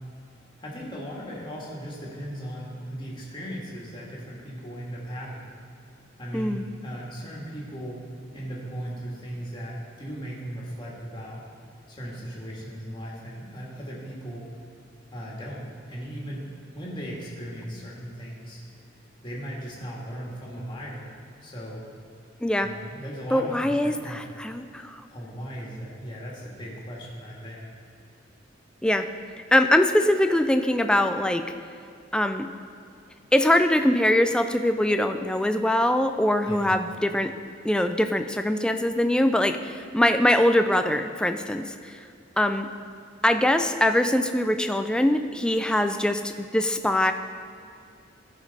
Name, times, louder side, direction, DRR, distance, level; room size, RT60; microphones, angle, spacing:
voice 1, 0.6-5.5 6.2-8.0 8.3-11.4 11.9-14.5 15.1-18.6 19.2-21.1 21.4-21.8 22.6-24.3 25.1-27.7 36.5-36.6, equal, 25° left, -5 dB, 1.8 m, -37 dB
voice 2, 6.3-6.6 22.4-22.7 23.3-25.0 28.8-29.1 29.5-31.4 32.1-32.5 33.3-37.3 37.6-41.7 42.4-42.7 43.2-47.1, left 1 dB, 5° left, 7 dB, 0.3 m, -22 dB
13.5 x 5.1 x 4.1 m, 2.5 s
head